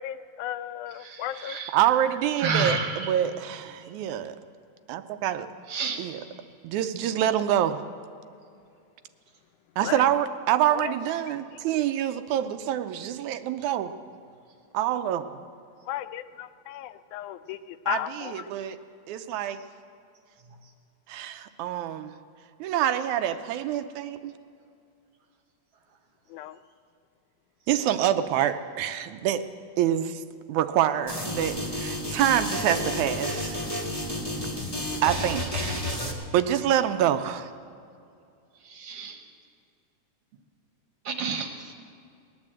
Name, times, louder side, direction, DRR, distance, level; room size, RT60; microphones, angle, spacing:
voice 1, 0.0-1.6 2.7-2.8 9.8-10.1 10.7-11.0 11.7-11.8 15.9-18.4 26.3-26.6, left 12 dB, 85° left, 12 dB, 2.0 m, -35 dB
voice 2, 1.0-1.7 2.4-3.1 5.7-6.0 38.7-39.2 41.1-41.7, right 4 dB, 60° right, 5 dB, 1.9 m, -30 dB
voice 3, 1.7-4.4 4.9-5.5 6.0-6.2 6.6-7.8 9.8-13.9 14.7-15.2 17.9-18.8 19.1-19.6 21.1-22.1 22.6-24.3 27.7-29.4 29.8-30.2 30.5-33.6 35.0-35.9 36.3-37.5, right 11 dB, 85° right, 10 dB, 2.0 m, -26 dB
sound 1, 31.1-36.1, left 1 dB, 15° left, 1.2 m, -31 dB
19.5 x 9.7 x 7.8 m, 2.5 s
omnidirectional pair, 3.4 m